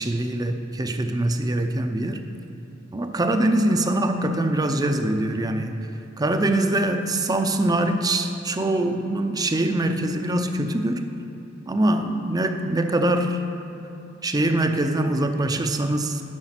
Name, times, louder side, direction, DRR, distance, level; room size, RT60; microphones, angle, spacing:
voice 1, 0.0-2.2 2.9-5.8 6.2-11.1 11.7-13.4 14.2-16.2, right 1 dB, 20° right, 7 dB, 0.6 m, -23 dB
10.5 x 6.8 x 5.9 m, 3.0 s
head